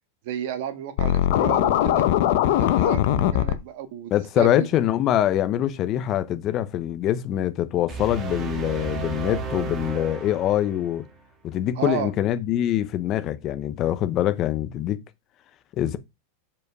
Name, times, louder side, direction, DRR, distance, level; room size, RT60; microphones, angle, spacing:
voice 1, 0.2-2.1 2.5-4.7 11.8-12.1, right 10 dB, 55° right, 1.6 m, -32 dB
Scratching (performance technique), 1.0-3.5, left 12 dB, 55° left, 0.9 m, -20 dB
voice 2, 4.1-11.0 11.4-15.0 15.8-16.0, left 12 dB, 30° left, 0.8 m, -24 dB
sound 1, 7.9-11.1, right 5 dB, 20° right, 1.6 m, -33 dB
7.3 x 5.3 x 4.8 m
supercardioid pair, 165°, 0 cm